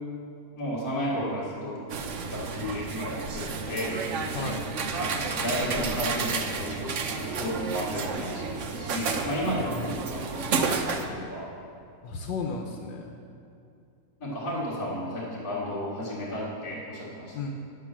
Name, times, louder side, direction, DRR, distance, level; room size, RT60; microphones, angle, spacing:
voice 1, 0.6-1.8 2.3-4.1 5.0-11.5 14.2-17.5, equal, 50° left, -7 dB, 2.4 m, -33 dB
sound 1, 1.9-11.1, right 4 dB, 55° right, 0.9 m, -31 dB
voice 2, 9.6-9.9 12.0-13.1 17.3-17.5, left 4 dB, 85° left, 3 dB, 1.5 m, -34 dB
10.0 x 8.2 x 7.3 m, 2.5 s
omnidirectional pair, 1.9 m